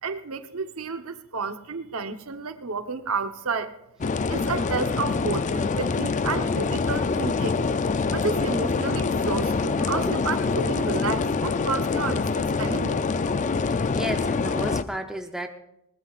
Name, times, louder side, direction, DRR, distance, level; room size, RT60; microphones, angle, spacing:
voice 1, 0.0-3.7 4.3-7.6 8.1-13.0, right 4 dB, 85° right, 8 dB, 1.0 m, -31 dB
sound 1, 4.0-14.8, left 4 dB, 35° left, 0.4 m, -25 dB
voice 2, 10.1-10.6 13.7-15.5, right 1 dB, 5° right, 3 dB, 0.7 m, -33 dB
20.5 x 19.5 x 2.4 m, 0.84 s
head